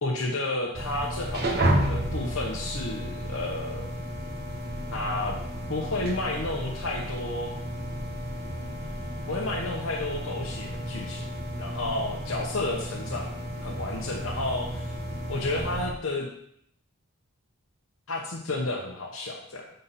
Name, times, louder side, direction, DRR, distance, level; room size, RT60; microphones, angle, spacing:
voice 1, 0.0-3.9 4.9-5.4 5.7-7.5 9.3-11.2 11.6-13.3 13.6-15.0 15.3-16.3 18.1-19.6, left 2 dB, 70° left, -2 dB, 0.9 m, -31 dB
sound 1, 0.7-15.9, right 1 dB, 45° right, 1.0 m, -32 dB
6.5 x 4.1 x 5.6 m, 0.69 s
head